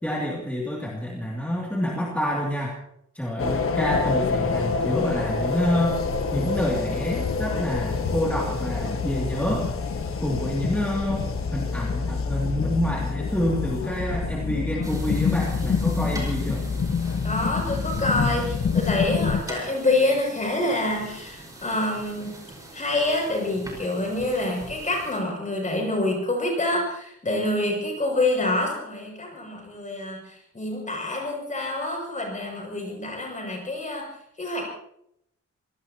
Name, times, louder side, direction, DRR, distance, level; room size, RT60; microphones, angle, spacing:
voice 1, 0.0-2.8 3.1-6.0 6.3-9.8 10.2-16.7, equal, 5° left, -3 dB, 2.7 m, -28 dB
sound 1, 3.4-19.4, left 5 dB, 50° left, 1.3 m, -26 dB
sound 2, 14.8-25.2, right 1 dB, 10° right, 5.2 m, -43 dB
voice 2, 17.2-22.4 22.7-34.1 34.4-34.6, left 2 dB, 25° left, 0 dB, 7.0 m, -27 dB
27.0 x 18.0 x 3.0 m, 0.73 s
wide cardioid pair, 180°, 29 cm